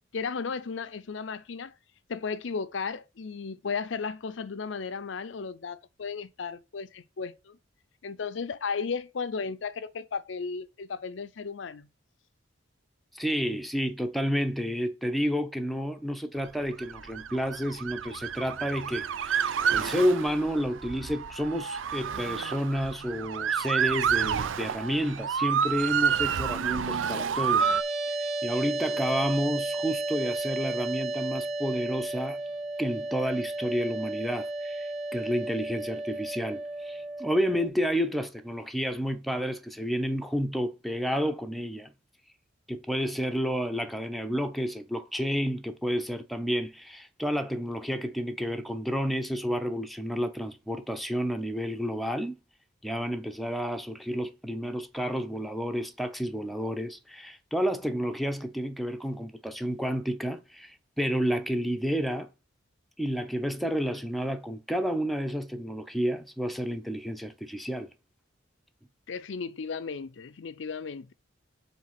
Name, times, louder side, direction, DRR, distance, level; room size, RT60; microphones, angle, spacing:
voice 1, 0.0-1.7 2.1-7.6 8.0-11.9 69.1-71.1, left 5 dB, 70° left, 0.5 m, -35 dB
voice 2, 13.1-27.6 28.4-32.4 32.8-41.9 42.7-52.4 52.8-62.3 63.0-67.9, equal, ahead, 0.7 m, -30 dB
Motor vehicle (road) / Siren, 16.7-27.8, right 7 dB, 80° right, 0.5 m, -29 dB
sound 1, 27.6-37.7, right 2 dB, 35° right, 1.1 m, -33 dB
7.5 x 3.4 x 5.9 m
head